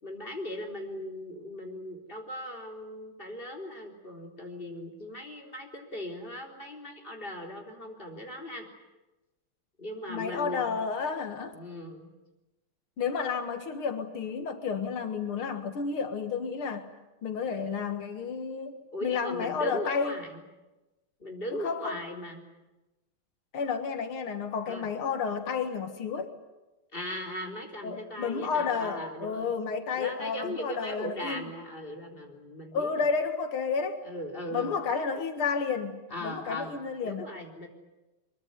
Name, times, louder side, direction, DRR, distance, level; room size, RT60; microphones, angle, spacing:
voice 1, 0.0-8.7 9.8-10.8 11.5-12.1 18.9-20.4 21.2-22.4 24.7-24.9 26.9-29.5 29.9-33.0 34.1-34.8 36.1-36.8 37.0-37.7, left 1 dB, 25° left, 1 dB, 4.0 m, -38 dB
voice 2, 10.1-11.6 13.0-16.9 17.2-20.1 21.5-22.0 23.5-26.3 27.8-31.5 32.7-34.0 34.5-37.3, left 5 dB, 90° left, 7 dB, 2.5 m, -31 dB
24.0 x 22.5 x 9.6 m, 1.1 s
omnidirectional pair, 2.3 m